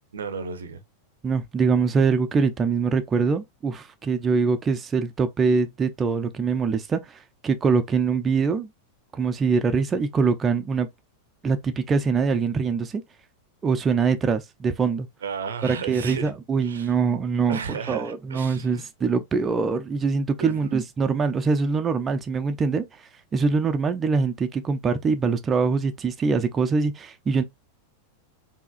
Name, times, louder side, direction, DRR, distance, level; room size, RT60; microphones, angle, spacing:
voice 1, 0.1-0.8 15.2-16.3 16.6-16.9 17.5-18.9 20.4-20.7, right 6 dB, 65° right, 0.6 m, -34 dB
voice 2, 1.2-8.7 9.1-10.9 11.4-13.0 13.6-15.1 15.6-17.6 17.9-23.0 23.3-27.4, right 5 dB, 20° right, 0.5 m, -23 dB
4.7 x 2.8 x 2.4 m
figure-of-eight pair, 90°, 0 cm